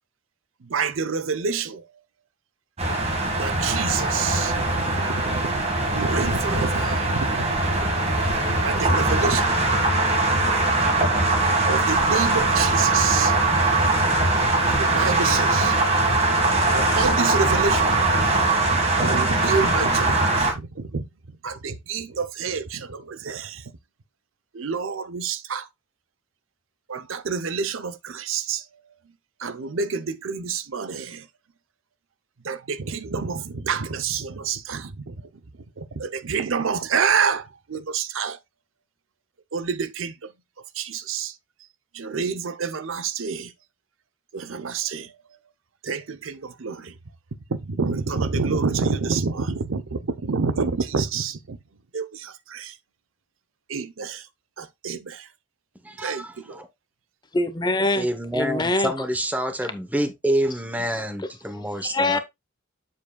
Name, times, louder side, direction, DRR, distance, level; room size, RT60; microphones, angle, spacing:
voice 1, 0.6-1.9 3.4-7.5 8.6-9.5 11.7-13.3 14.7-15.8 16.7-18.0 19.0-21.1 21.4-23.6 24.5-25.7 26.9-28.6 29.4-31.3 32.4-35.2 35.8-38.4 39.5-40.3 40.7-41.3 41.9-43.5 44.3-45.2 45.8-46.9 47.5-51.6 51.9-52.8 53.7-54.3 54.6-55.3 56.0-56.6, right 5 dB, 80° right, 0.7 m, -28 dB
sound 1, 2.8-20.5, right 2 dB, 30° right, 1.7 m, -21 dB
voice 2, 55.8-56.7 58.0-62.2, right 1 dB, 10° right, 0.8 m, -27 dB
voice 3, 57.3-58.1 58.3-58.9 61.8-62.2, left 2 dB, 20° left, 0.7 m, -23 dB
7.3 x 7.1 x 2.3 m
head